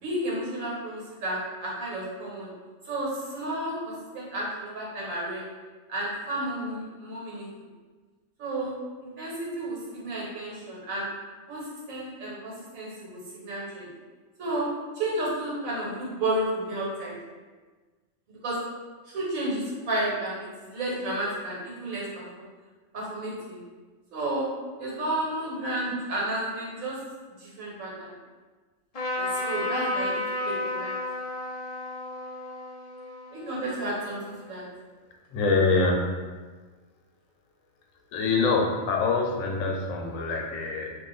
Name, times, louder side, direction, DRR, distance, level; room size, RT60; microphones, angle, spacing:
voice 1, 0.0-2.5 2.9-5.4 5.9-7.5 8.4-8.7 9.0-11.1 11.5-13.9 14.4-14.7 14.9-17.2 18.3-18.6 19.1-22.5 22.9-23.6 24.1-24.5 24.8-27.0 27.4-28.1 29.1-30.9 33.3-34.6, right 1 dB, 85° right, -5 dB, 1.3 m, -32 dB
Trumpet, 28.9-34.5, left 2 dB, 55° left, 0.4 m, -32 dB
voice 2, 35.3-36.1 38.1-41.0, left 3 dB, 80° left, 0 dB, 1.0 m, -25 dB
2.4 x 2.4 x 3.8 m, 1.4 s
omnidirectional pair, 1.4 m